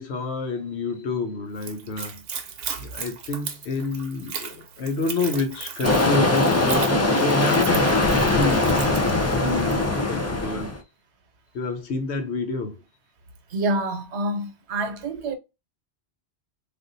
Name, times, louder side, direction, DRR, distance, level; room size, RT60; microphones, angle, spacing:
voice 1, 0.0-2.2 2.8-6.9 7.2-8.7 9.0-10.7 11.5-12.8, left 3 dB, 85° left, 1.0 m, -28 dB
Splash splatter / Trickle dribble, 1.5-9.9, right 6 dB, 65° right, 0.9 m, -37 dB
sound 1, 5.8-10.8, left 2 dB, 25° left, 0.3 m, -21 dB
voice 2, 13.5-15.4, right 2 dB, 90° right, 1.1 m, -27 dB
3.4 x 2.5 x 2.5 m
omnidirectional pair, 1.1 m